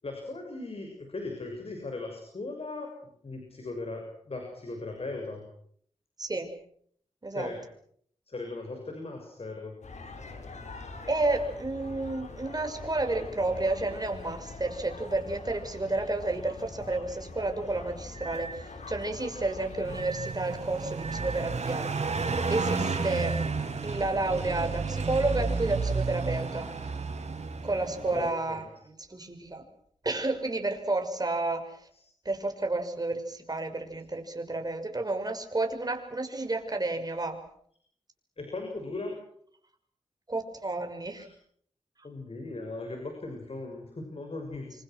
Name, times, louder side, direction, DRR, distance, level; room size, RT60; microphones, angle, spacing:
voice 1, 0.0-2.9 3.2-5.4 7.3-7.6 8.3-9.7 28.0-28.6 31.9-32.0 38.4-39.1 41.2-41.3 42.0-44.7, left 2 dB, 55° left, 3 dB, 6.9 m, -38 dB
sound 1, 9.8-20.0, left 3 dB, 75° left, 4.9 m, -43 dB
voice 2, 11.1-21.9 22.5-23.4 23.8-26.7 27.6-29.6 30.0-31.8 32.2-37.4 40.3-41.3, right 2 dB, 35° right, 5 dB, 6.1 m, -31 dB
sound 2, 18.1-18.7 19.9-20.5 21.0-21.5 22.1-22.6 23.1-23.6, right 3 dB, 50° right, 3.0 m, -41 dB
Car passing by, 19.8-28.3, right 4 dB, 70° right, 4.7 m, -32 dB
26.5 x 26.5 x 6.3 m, 0.64 s
cardioid pair, 60°, 12 cm